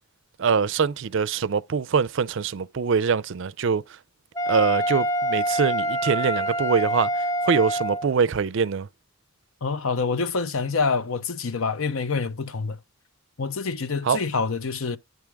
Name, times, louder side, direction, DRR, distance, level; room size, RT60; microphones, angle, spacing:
voice 1, 0.4-3.8 4.5-8.9 14.0-14.2, right 6 dB, 55° right, 0.4 m, -24 dB
Wind instrument woodwind instrument, 4.4-8.1, equal, 15° left, 0.4 m, -26 dB
voice 2, 9.6-12.8 13.4-15.0, left 4 dB, 70° left, 0.7 m, -26 dB
9.3 x 3.5 x 4.6 m
head